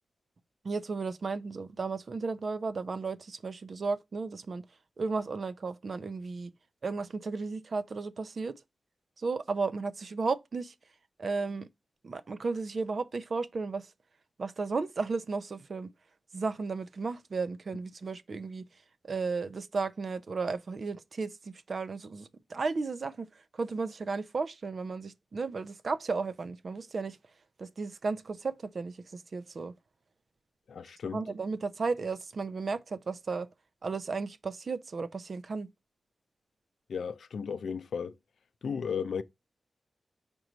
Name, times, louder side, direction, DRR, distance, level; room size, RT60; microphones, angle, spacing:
voice 1, 0.6-4.6 5.0-6.5 6.8-8.5 9.2-10.7 11.2-11.7 12.0-13.9 14.4-15.9 16.3-18.6 19.0-23.3 23.5-27.2 27.6-29.7 31.1-33.5 33.8-35.7, right 4 dB, 55° right, 0.6 m, -34 dB
voice 2, 30.7-31.2 36.9-38.1 38.6-39.2, left 6 dB, 80° left, 0.5 m, -34 dB
5.3 x 4.7 x 3.9 m
wide cardioid pair, 90°, 0 cm